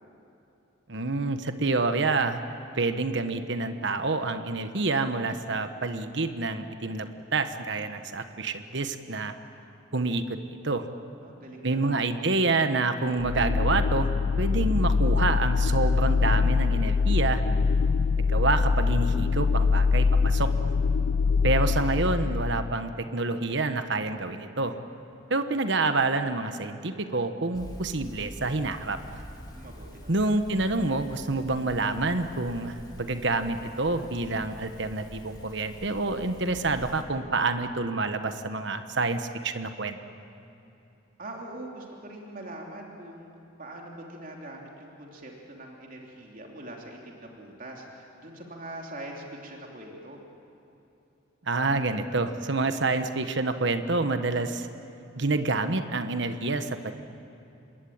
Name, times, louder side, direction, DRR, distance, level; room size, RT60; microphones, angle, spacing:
voice 1, 0.9-2.4 2.8-9.3 9.9-10.4 10.6-10.9 11.6-14.1 14.4-17.4 18.3-20.5 21.4-24.7 25.3-29.2 30.1-40.0 51.5-54.7 55.2-56.9, right 3 dB, 60° right, 8 dB, 1.3 m, -28 dB
voice 2, 11.2-12.0 29.4-30.3 41.2-43.3 43.6-50.2, right 1 dB, 45° right, 0 dB, 3.2 m, -43 dB
sound 1, 13.2-22.8, left 4 dB, 70° left, 0.5 m, -24 dB
sound 2, 27.5-37.0, equal, 20° left, 2.8 m, -45 dB
26.5 x 21.5 x 8.8 m, 2.8 s
head